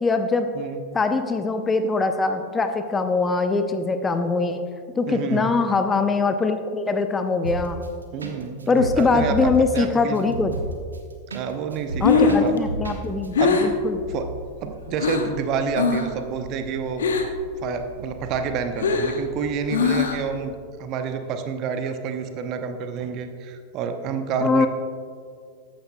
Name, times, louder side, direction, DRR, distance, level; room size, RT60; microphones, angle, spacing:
voice 1, 0.0-0.5 0.9-4.6 4.9-7.8 8.7-10.5 12.0-14.0 24.4-24.7, left 4 dB, 15° left, 8 dB, 0.6 m, -22 dB
voice 2, 5.1-5.5 8.1-10.4 11.3-12.5 13.4-13.6 14.1-14.3 14.6-17.1 17.6-24.7, right 6 dB, 40° right, 7 dB, 0.8 m, -29 dB
sound 1, 7.4-7.9 8.2-8.3 8.6-11.4 11.7-13.0 13.2-13.3, right 3 dB, 75° right, 1.0 m, -30 dB
Breathing, 11.8-15.4 15.7-16.2 16.4-17.5 17.8-20.4, left 5 dB, 65° left, 0.9 m, -22 dB
14.5 x 10.5 x 2.3 m, 2.1 s
figure-of-eight pair, 90°, 0 cm